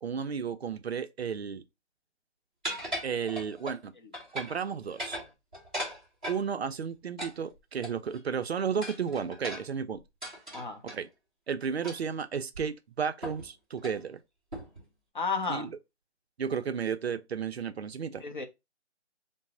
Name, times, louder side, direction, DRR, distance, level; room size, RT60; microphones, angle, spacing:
voice 1, 0.0-1.6 3.0-3.9 4.3-5.2 6.3-10.0 10.9-11.1 11.5-14.2 15.5-15.8 16.4-18.2, right 6 dB, 60° right, 0.5 m, -33 dB
sound 1, 2.6-3.8 4.1-4.6 4.9-6.4 7.2-8.2 8.8-11.0 11.8-12.1 12.5-12.6 13.2-13.5 13.8-14.0 14.5-14.8, equal, 5° right, 0.6 m, -38 dB
voice 2, 15.1-15.7 18.2-18.5, left 5 dB, 40° left, 0.6 m, -32 dB
3.9 x 2.0 x 3.6 m
figure-of-eight pair, 160°, 36 cm